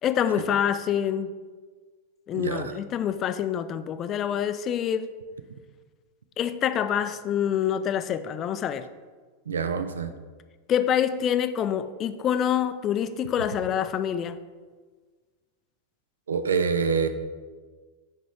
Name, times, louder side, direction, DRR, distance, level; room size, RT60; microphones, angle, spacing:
voice 1, 0.0-1.3 2.3-5.1 6.4-8.9 10.7-14.4, left 9 dB, 30° left, 11 dB, 0.3 m, -26 dB
voice 2, 2.3-2.7 9.5-10.1 16.3-17.1, right 5 dB, 70° right, 10 dB, 0.4 m, -26 dB
6.2 x 4.3 x 4.8 m, 1.4 s
figure-of-eight pair, 90°, 0 cm